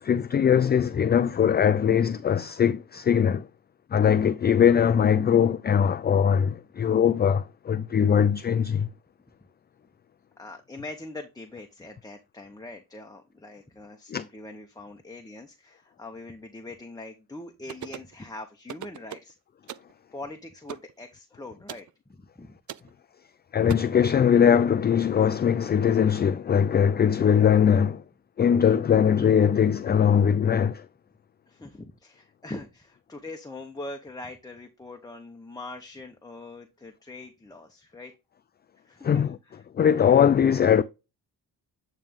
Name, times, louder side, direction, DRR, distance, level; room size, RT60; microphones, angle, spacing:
voice 1, 0.0-3.5 3.9-8.9 14.1-14.2 23.5-28.0 28.4-30.9 39.0-39.4 39.7-40.8, left 8 dB, 30° left, 0.3 m, -21 dB
voice 2, 10.4-19.4 20.1-22.5 22.8-22.9 31.5-38.1 38.8-39.6, left 2 dB, 10° left, 0.9 m, -42 dB
sound 1, 17.7-18.1 18.7-19.3 19.7-19.9 20.7-20.9 21.7-21.9 22.7-22.9 23.7-23.8, right 11 dB, 50° right, 0.5 m, -39 dB
8.9 x 3.3 x 3.6 m
cardioid pair, 80°, 39 cm